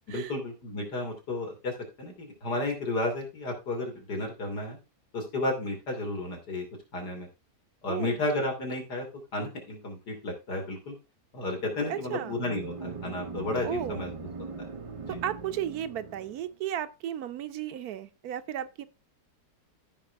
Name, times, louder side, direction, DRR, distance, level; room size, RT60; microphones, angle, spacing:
voice 1, 0.1-1.7 2.0-4.8 5.1-6.6 6.9-7.3 7.8-9.1 9.3-10.9 11.3-14.1 15.0-15.2, left 2 dB, 90° left, 3.5 m, -32 dB
voice 2, 7.9-8.2 11.9-12.4 13.6-14.1 15.1-18.9, right 11 dB, 70° right, 1.2 m, -34 dB
sound 1, 11.6-16.5, right 4 dB, 45° right, 0.4 m, -41 dB
14.5 x 5.0 x 3.5 m
omnidirectional pair, 1.7 m